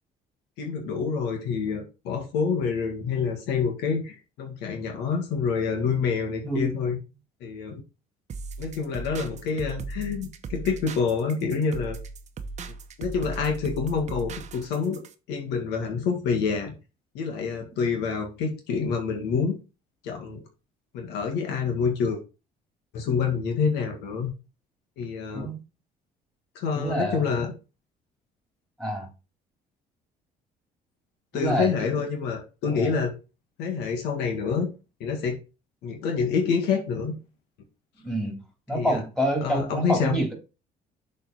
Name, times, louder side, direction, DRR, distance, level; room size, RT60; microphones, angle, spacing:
voice 1, 0.6-7.0 7.4-7.8 8.6-12.0 13.0-15.0 15.3-16.7 17.1-19.5 20.0-20.4 20.9-22.2 22.9-24.3 25.0-25.5 26.6-27.5 31.3-33.1 33.6-34.7 35.0-35.4 35.8-37.1 38.7-39.0 39.4-40.2, left 5 dB, 90° left, 3 dB, 1.9 m, -27 dB
voice 2, 6.4-6.9 25.3-25.6 26.7-27.2 28.8-29.1 31.3-32.0 32.6-32.9 38.0-38.4 38.7-40.3, right 1 dB, 5° left, 1 dB, 3.3 m, -28 dB
sound 1, 8.3-15.1, right 4 dB, 45° right, 0.9 m, -37 dB
6.8 x 4.2 x 4.6 m, 0.30 s
cardioid pair, 110°, 17 cm